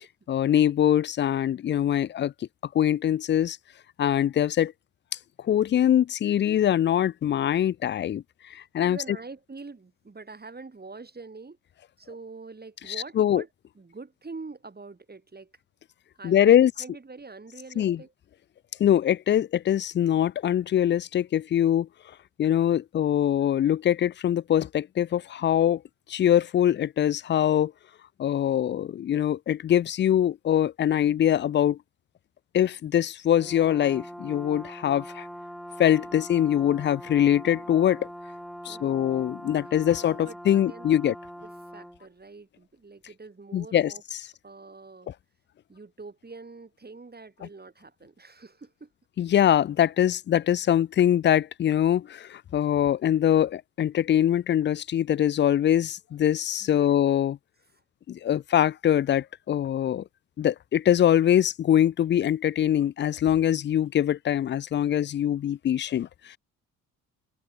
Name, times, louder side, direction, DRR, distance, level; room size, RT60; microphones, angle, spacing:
voice 1, 0.3-2.3 2.7-3.6 4.0-4.7 5.4-9.0 13.2-13.4 16.2-16.7 17.8-18.0 18.8-21.9 22.4-25.8 26.1-27.7 28.2-31.8 32.5-35.3 35.8-38.1 38.6-41.1 43.5-44.2 49.2-57.4 58.1-60.0 60.4-66.4, left 10 dB, 30° left, 0.4 m, -23 dB
voice 2, 8.8-11.6 12.0-13.5 13.7-15.5 16.2-18.1 36.1-36.2 38.7-39.1 40.2-41.1 41.4-44.0 44.4-45.1 45.7-48.9 56.6-57.0, right 3 dB, 25° right, 3.3 m, -44 dB
Brass instrument, 33.3-42.0, equal, ahead, 2.3 m, -42 dB
hypercardioid pair, 45°, 40 cm